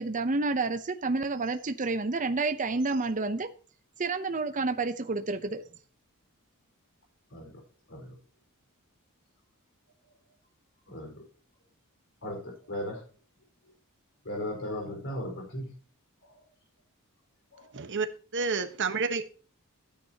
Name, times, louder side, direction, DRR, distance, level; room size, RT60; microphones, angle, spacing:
voice 1, 0.0-3.5 4.0-5.6, right 3 dB, 35° right, 0.7 m, -29 dB
voice 2, 7.3-7.6 7.9-8.1 10.9-11.2 12.2-13.0 14.2-15.7 16.2-16.4 17.5-17.7, left 1 dB, 60° left, 4.9 m, -37 dB
voice 3, 17.7-18.1 18.3-19.2, right 4 dB, 55° right, 1.3 m, -29 dB
14.5 x 9.7 x 2.9 m
head